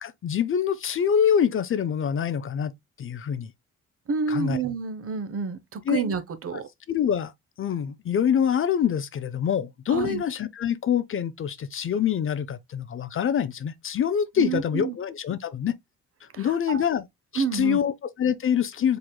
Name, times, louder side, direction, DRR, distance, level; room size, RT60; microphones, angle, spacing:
voice 1, 0.0-2.7 3.0-3.5 4.3-4.6 5.9-6.0 6.9-7.3 7.6-15.7 16.4-17.1 17.3-19.0, left 8 dB, 45° left, 0.6 m, -25 dB
voice 2, 4.1-6.7 9.9-10.2 14.4-15.0 16.3-16.8 17.3-17.8, right 5 dB, 50° right, 1.0 m, -29 dB
4.8 x 3.9 x 2.2 m
cardioid pair, 90°, 30 cm